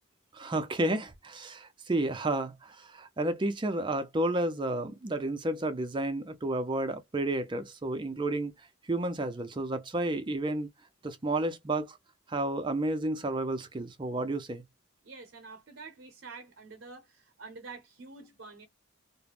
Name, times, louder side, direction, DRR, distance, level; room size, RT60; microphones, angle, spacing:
voice 1, 0.3-8.5 8.9-10.7 11.0-12.0 12.3-14.6, right 1 dB, 20° right, 0.4 m, -31 dB
voice 2, 15.0-18.7, right 4 dB, 55° right, 0.7 m, -47 dB
2.4 x 2.1 x 3.2 m
head